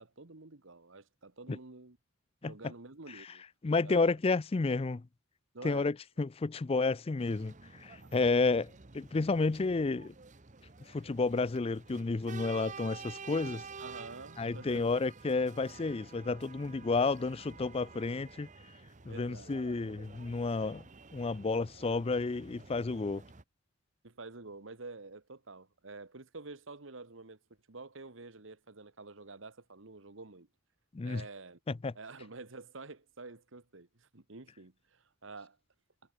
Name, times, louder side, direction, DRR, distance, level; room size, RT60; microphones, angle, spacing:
voice 1, 0.0-2.0 2.4-3.4 3.8-4.1 5.5-5.9 8.0-8.1 13.8-14.9 19.1-19.5 24.0-27.4 27.7-30.5 31.0-31.6 31.9-35.6, right 3 dB, 70° right, 1.5 m, -48 dB
voice 2, 3.6-5.0 5.6-10.1 10.9-13.6 14.4-18.5 19.0-20.8 21.1-23.2 30.9-31.2 31.7-31.9, left 3 dB, 30° left, 0.4 m, -31 dB
sound 1, 7.2-23.4, right 4 dB, 40° right, 1.1 m, -50 dB
head